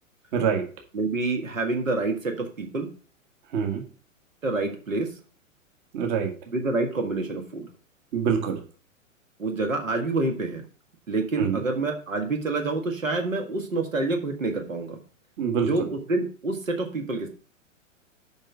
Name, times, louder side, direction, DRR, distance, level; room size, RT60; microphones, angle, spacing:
voice 1, 0.3-0.7 3.5-3.8 5.9-6.3 8.1-8.6 11.4-11.6 15.4-15.9, right 7 dB, 40° right, 3 dB, 1.8 m, -25 dB
voice 2, 0.9-2.9 4.4-5.2 6.5-7.7 9.4-10.6 11.1-15.0 15.6-17.3, right 3 dB, 75° right, 4 dB, 1.8 m, -27 dB
7.3 x 5.6 x 5.0 m, 0.38 s
figure-of-eight pair, 110°, 39 cm